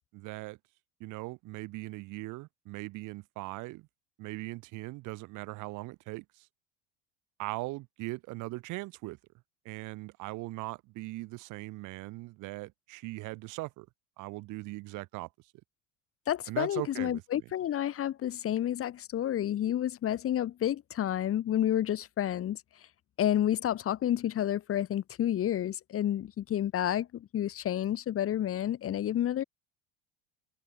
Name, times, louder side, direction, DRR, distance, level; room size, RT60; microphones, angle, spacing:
voice 1, 0.1-0.6 1.0-3.9 4.2-6.5 7.4-9.2 9.7-13.9 14.2-15.3 16.5-17.2, right 21 dB, 55° right, 1.9 m, -40 dB
voice 2, 16.3-22.6 23.2-29.4, left 11 dB, 35° left, 1.5 m, -30 dB
hypercardioid pair, 70°, 37 cm